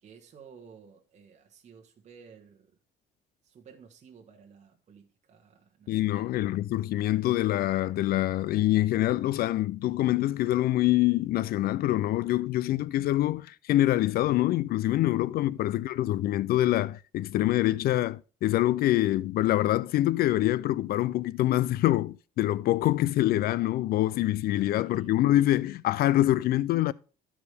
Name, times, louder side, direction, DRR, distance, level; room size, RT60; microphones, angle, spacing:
voice 1, 0.0-2.8 3.4-6.3 14.9-15.7 24.6-25.3, right 6 dB, 45° right, 1.3 m, -54 dB
voice 2, 5.9-26.9, left 15 dB, 65° left, 0.4 m, -25 dB
13.5 x 4.9 x 3.4 m
cardioid pair, 110°, 17 cm